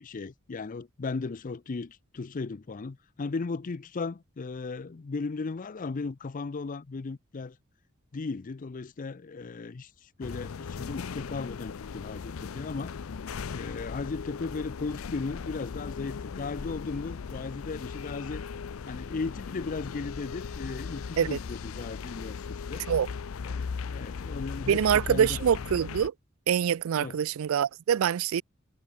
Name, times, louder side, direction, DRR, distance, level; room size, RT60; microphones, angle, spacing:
voice 1, 0.0-7.6 8.1-9.9 10.2-12.9 13.5-18.4 18.8-22.8 23.4-25.4 27.0-27.2, left 4 dB, 40° left, 0.5 m, -36 dB
sound 1, 10.2-26.1, left 5 dB, 90° left, 0.5 m, -38 dB
voice 2, 24.7-26.1 26.5-28.4, right 8 dB, 80° right, 0.4 m, -25 dB
head